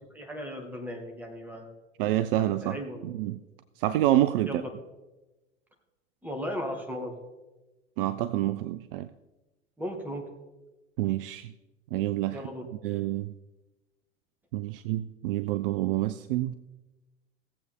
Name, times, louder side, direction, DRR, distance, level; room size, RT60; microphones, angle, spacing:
voice 1, 0.1-1.7 2.6-3.1 4.4-4.7 6.2-7.1 9.8-10.3 12.3-12.6, equal, 5° right, 2 dB, 2.1 m, -36 dB
voice 2, 2.0-2.8 3.0-3.4 3.8-4.5 8.0-9.1 11.0-11.5 11.9-12.4 12.8-13.3 14.5-16.5, right 14 dB, 50° right, 13 dB, 0.5 m, -27 dB
17.5 x 7.9 x 3.6 m, 1.1 s
figure-of-eight pair, 85°, 36 cm